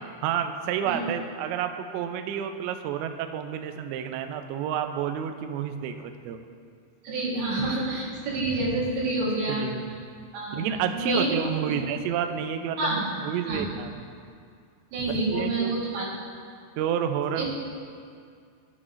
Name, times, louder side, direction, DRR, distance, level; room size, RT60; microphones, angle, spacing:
voice 1, 0.2-6.4 9.5-10.0 10.5-14.0 15.1-15.7 16.8-17.5, right 9 dB, 90° right, 7 dB, 2.5 m, -30 dB
voice 2, 7.0-9.7 10.3-11.3 11.7-11.8 12.8-13.1 13.5-13.7 14.9-16.1 17.4-17.5, right 2 dB, 70° right, -8 dB, 4.2 m, -28 dB
13.5 x 8.4 x 2.5 m, 2.2 s
omnidirectional pair, 5.6 m